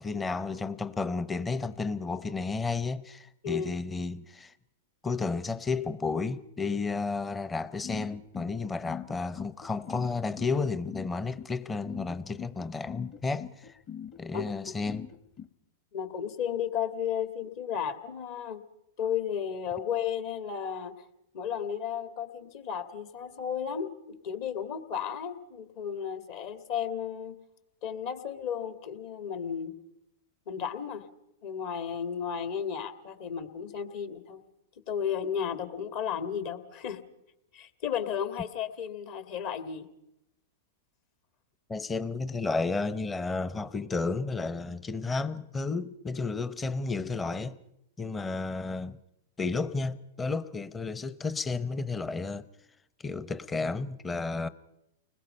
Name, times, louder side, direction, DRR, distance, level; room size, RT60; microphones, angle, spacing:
voice 1, 0.0-4.5 5.0-13.8 14.2-15.1 41.7-47.6 48.0-49.0 49.4-52.4 53.0-54.5, left 4 dB, 15° left, 0.8 m, -32 dB
sound 1, 7.8-15.5, left 9 dB, 35° left, 1.5 m, -41 dB
voice 2, 15.9-18.6 19.0-20.9 21.3-27.4 27.8-29.7 30.5-31.1 31.4-34.4 34.9-37.0 37.5-39.9, left 8 dB, 55° left, 2.1 m, -33 dB
30.0 x 20.5 x 5.5 m
hypercardioid pair, 115°, 0 cm